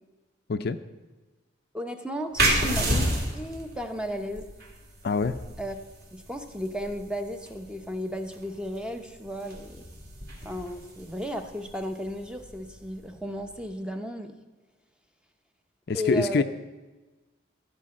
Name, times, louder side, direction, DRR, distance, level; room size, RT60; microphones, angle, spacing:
voice 1, 1.7-3.1 3.3-4.5 5.6-5.8 6.1-9.8 10.4-14.3 15.9-16.4, equal, 5° right, 6 dB, 0.6 m, -34 dB
sound 1, 2.4-13.6, right 1 dB, 50° right, 2.7 m, -32 dB
voice 2, 5.0-5.4 15.9-16.4, left 4 dB, 50° left, 10 dB, 0.4 m, -25 dB
14.0 x 5.2 x 7.6 m, 1.2 s
head